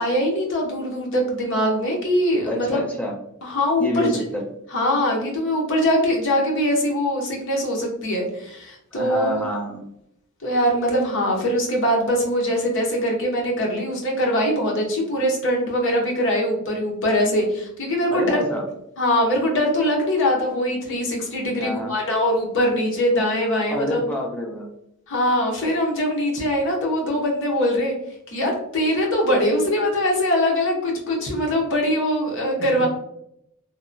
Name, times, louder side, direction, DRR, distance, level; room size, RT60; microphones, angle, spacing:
voice 1, 0.0-2.8 3.4-4.2 4.7-9.4 10.4-18.4 19.0-24.0 25.1-27.9 28.3-32.9, equal, 60° left, 0 dB, 0.7 m, -22 dB
voice 2, 2.4-3.2 3.8-4.5 8.9-9.8 18.1-18.7 21.6-22.0 23.7-24.7 32.8-32.9, left 1 dB, 5° left, 0 dB, 0.4 m, -28 dB
2.8 x 2.1 x 2.4 m, 0.76 s
head